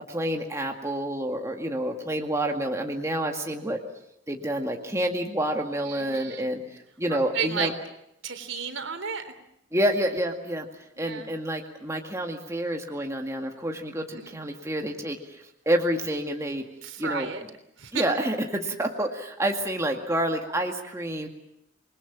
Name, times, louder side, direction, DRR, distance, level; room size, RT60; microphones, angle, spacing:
voice 1, 0.1-3.8 4.3-6.6 7.0-7.7 9.7-10.7 11.0-16.6 17.0-17.3 17.9-21.3, right 1 dB, 15° right, 2 dB, 2.1 m, -28 dB
voice 2, 5.8-6.5 7.3-7.7 8.2-9.3 11.0-11.3 14.1-14.3 16.8-17.4 17.8-18.0, right 6 dB, 80° right, 8 dB, 3.6 m, -32 dB
27.5 x 21.0 x 7.4 m, 0.77 s
head